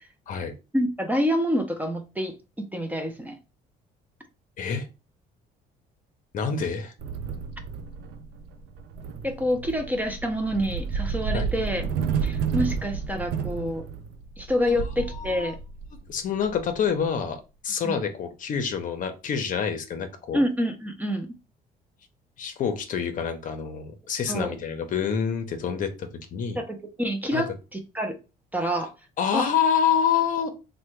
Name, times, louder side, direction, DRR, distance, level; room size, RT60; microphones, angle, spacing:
voice 1, 0.7-3.4 9.2-11.8 12.2-13.9 14.4-15.6 17.8-18.0 20.3-21.3 24.3-24.5 26.6-28.2 28.5-28.9 29.3-29.5, equal, 10° right, 0.5 m, -27 dB
voice 2, 6.3-6.9 11.3-11.4 14.7-14.8 15.3-15.5 16.1-20.4 22.4-26.6 27.3-27.4 29.2-30.5, left 7 dB, 50° left, 0.6 m, -27 dB
sound 1, 7.0-17.2, right 6 dB, 80° right, 0.4 m, -31 dB
3.3 x 2.1 x 3.1 m
cardioid pair, 110°, 17 cm